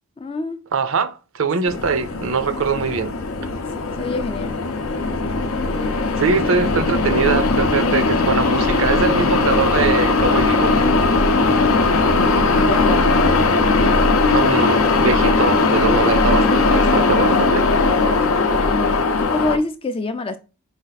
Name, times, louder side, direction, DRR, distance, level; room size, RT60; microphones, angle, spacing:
voice 1, 0.2-0.6 4.0-4.6 5.7-6.0 12.1-13.4 18.6-20.4, left 3 dB, 25° left, 0.4 m, -27 dB
voice 2, 0.7-3.1 6.2-10.9 14.3-17.6, right 5 dB, 60° right, 0.5 m, -22 dB
sound 1, 1.7-19.6, left 3 dB, 70° left, 0.6 m, -18 dB
5.1 x 2.4 x 4.0 m
head